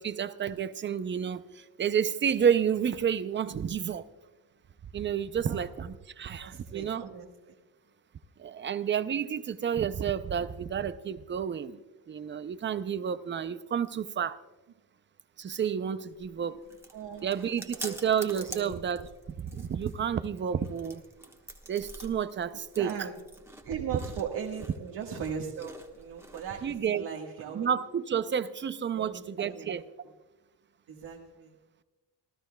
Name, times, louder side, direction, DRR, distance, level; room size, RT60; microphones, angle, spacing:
voice 1, 0.0-4.0 4.9-7.1 8.4-11.8 12.1-14.4 15.4-16.6 17.2-19.1 19.4-21.0 21.7-23.1 26.6-27.0 27.5-29.9, right 8 dB, 30° right, 13 dB, 0.5 m, -30 dB
voice 2, 6.4-7.5 16.9-18.0 18.4-18.8 22.7-23.1 23.6-27.8 28.9-29.7 30.9-31.6, right 7 dB, 75° right, 0 dB, 1.5 m, -39 dB
Chewing mastication, 16.1-26.8, right 1 dB, 5° right, 1.2 m, -47 dB
27.0 x 13.5 x 2.2 m, 1.1 s
cardioid pair, 135°, 40 cm